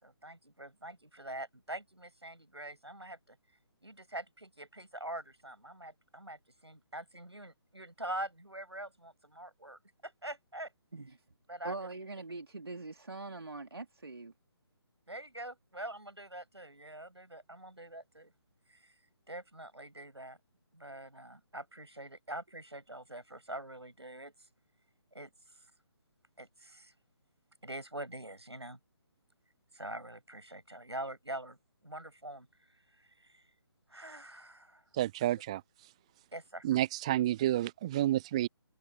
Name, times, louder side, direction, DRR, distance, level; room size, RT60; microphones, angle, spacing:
voice 1, 0.0-3.4 3.8-10.7 11.5-11.9 15.1-18.3 18.7-18.9 19.3-20.4 20.7-24.3 25.1-25.3 26.4-26.9 27.6-28.8 29.7-31.6 31.8-32.5 32.7-33.4 33.9-34.8 36.3-36.7, right 1 dB, 80° right, 5.9 m, -44 dB
voice 2, 11.6-14.3, right 3 dB, 65° right, 2.3 m, -42 dB
voice 3, 34.9-35.6 36.6-38.5, right 13 dB, 15° right, 0.4 m, -30 dB
figure-of-eight pair, 145°, 14 cm